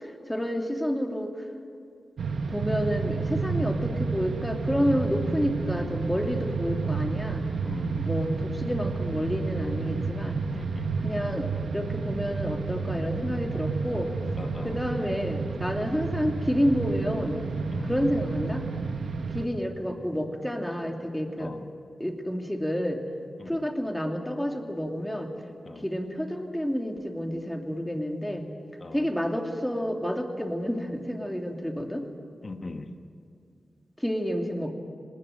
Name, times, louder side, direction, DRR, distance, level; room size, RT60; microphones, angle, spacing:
voice 1, 0.3-1.3 2.5-7.4 8.0-10.4 11.0-14.1 14.6-17.4 17.8-18.6 19.3-21.5 22.0-23.0 23.5-25.3 25.8-28.5 28.9-32.1 34.0-34.7, equal, 5° left, 3 dB, 2.8 m, -29 dB
sound 1, 2.2-19.5, right 4 dB, 90° right, 1.2 m, -30 dB
voice 2, 7.6-8.1 10.5-11.0 14.4-14.8 17.7-17.9 19.1-19.3 21.4-21.7 23.4-23.6 25.6-25.8 28.8-29.0 32.4-32.9, left 3 dB, 50° left, 6 dB, 1.4 m, -40 dB
19.0 x 18.5 x 8.9 m, 2.3 s
cardioid pair, 50°, 0 cm